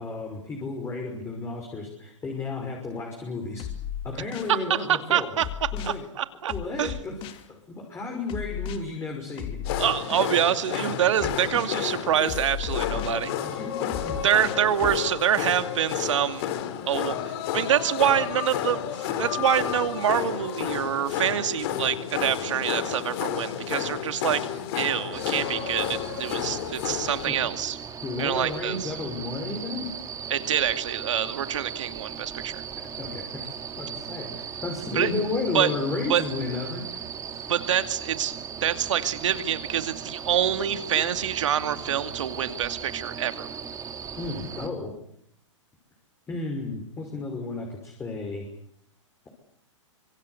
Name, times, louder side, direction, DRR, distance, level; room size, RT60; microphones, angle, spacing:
voice 1, 0.0-3.6 4.0-5.3 5.7-6.0 6.5-7.1 7.5-9.6 13.4-14.2 27.2-27.4 28.0-29.9 33.0-33.5 33.7-36.8 40.9-41.0 44.2-44.9 46.3-48.5, left 3 dB, 15° left, 1 dB, 5.9 m, -33 dB
sound 1, 3.6-4.6 5.4-6.0 6.5-7.5 8.3-8.8 9.4-10.3 11.2-11.7 12.3-13.2 13.9-15.0, left 10 dB, 35° left, 3.0 m, -34 dB
voice 2, 4.9-5.4 5.8-6.5 6.8-7.0 9.8-13.3 14.2-16.4 16.9-24.5 24.7-27.8 28.2-28.9 30.3-32.6 34.9-35.1 35.5-35.7 36.1-36.2 37.5-38.3 38.6-43.5, right 10 dB, 70° right, 10 dB, 2.5 m, -26 dB
sound 2, 9.7-27.3, left 10 dB, 50° left, 3.8 m, -31 dB
sound 3, 25.1-44.7, right 7 dB, 20° right, 3.2 m, -38 dB
26.0 x 24.0 x 8.3 m, 0.71 s
hypercardioid pair, 125°, 16 cm